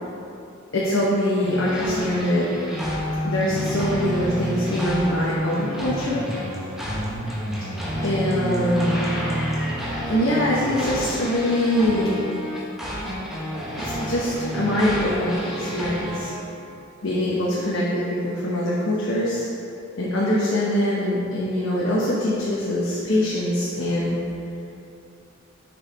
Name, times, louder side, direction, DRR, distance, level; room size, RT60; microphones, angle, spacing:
voice 1, 0.7-2.5 3.2-6.2 8.0-9.0 10.1-12.2 13.8-16.3 17.0-19.5 20.0-24.2, left 1 dB, 80° left, -6 dB, 1.0 m, -23 dB
sound 1, 1.4-16.3, equal, ahead, 1.1 m, -29 dB
6.8 x 4.8 x 4.0 m, 2.6 s
head